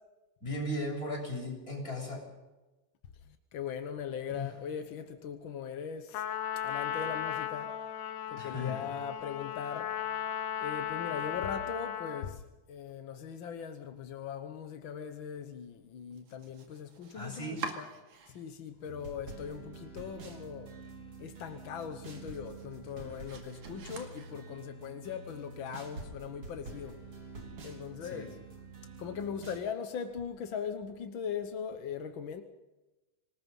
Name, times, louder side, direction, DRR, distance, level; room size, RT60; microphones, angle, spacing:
voice 1, 0.4-2.2 4.3-4.5 8.4-8.8 17.1-17.6 28.0-28.3, left 1 dB, 25° left, 8.5 m, -37 dB
voice 2, 3.5-6.2 6.6-7.8 8.3-9.9 10.6-12.4 12.7-17.9 18.3-20.7 21.2-27.0 27.6-28.4 29.0-32.4, left 7 dB, 65° left, 1.3 m, -40 dB
Trumpet, 6.1-12.4, left 10 dB, 80° left, 2.6 m, -36 dB
Domestic sounds home sounds, 16.1-18.7 19.0-19.7 20.1-20.2 20.6-20.7 21.1-24.8, right 5 dB, 70° right, 3.6 m, -47 dB
sound 1, 18.8-29.6, right 3 dB, 45° right, 3.9 m, -47 dB
25.5 x 20.0 x 5.5 m
omnidirectional pair, 3.6 m